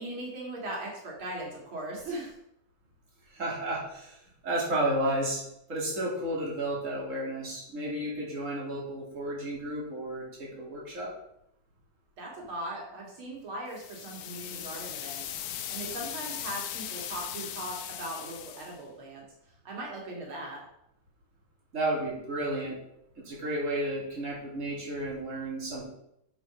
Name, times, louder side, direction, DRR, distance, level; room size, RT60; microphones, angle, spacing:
voice 1, 0.0-2.3 12.2-15.4 15.7-19.3 19.6-20.7, right 1 dB, 85° right, -2 dB, 3.0 m, -39 dB
voice 2, 3.3-5.4 5.7-11.1 21.7-22.8 23.2-25.8, right 1 dB, 40° right, -4 dB, 3.0 m, -32 dB
sound 1, 13.7-18.8, left 11 dB, 85° left, 1.5 m, -38 dB
8.2 x 5.4 x 5.8 m, 0.79 s
omnidirectional pair, 2.2 m